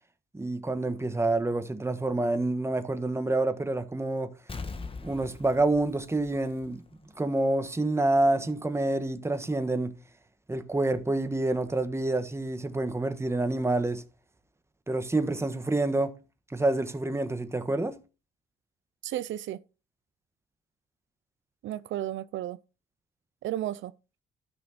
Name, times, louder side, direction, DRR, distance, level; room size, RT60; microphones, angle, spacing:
voice 1, 0.3-4.3 5.0-6.8 7.2-9.9 10.5-14.0 14.9-16.2 16.5-18.0, right 2 dB, 15° right, 1.3 m, -27 dB
Explosion, 4.5-7.1 7.4-7.5, left 4 dB, 25° left, 1.4 m, -41 dB
voice 2, 19.0-19.6 21.6-22.6 23.4-23.9, right 12 dB, 75° right, 0.5 m, -33 dB
13.0 x 6.0 x 4.2 m
cardioid pair, 90°, 20 cm